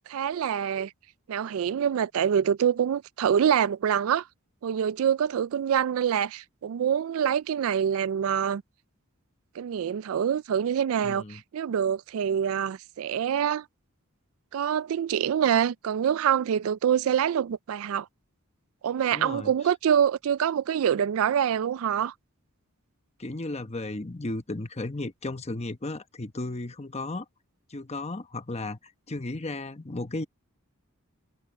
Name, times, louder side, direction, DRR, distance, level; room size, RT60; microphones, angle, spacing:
voice 1, 0.1-0.9 1.3-4.3 4.6-8.6 9.6-13.6 14.5-18.1 18.8-22.1, right 8 dB, 65° right, 0.3 m, -25 dB
voice 2, 11.0-11.4 19.1-19.5 23.2-27.2 27.7-30.2, left 2 dB, 30° left, 1.0 m, -34 dB
head